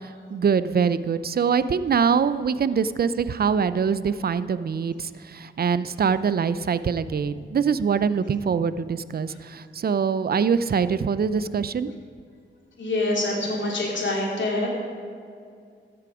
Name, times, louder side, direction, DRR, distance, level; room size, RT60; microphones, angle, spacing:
voice 1, 0.0-11.9, right 6 dB, 50° right, 14 dB, 0.5 m, -24 dB
voice 2, 12.8-14.7, left 2 dB, 65° left, -2 dB, 3.4 m, -25 dB
13.5 x 9.6 x 5.0 m, 2.3 s
cardioid pair, 65°, 21 cm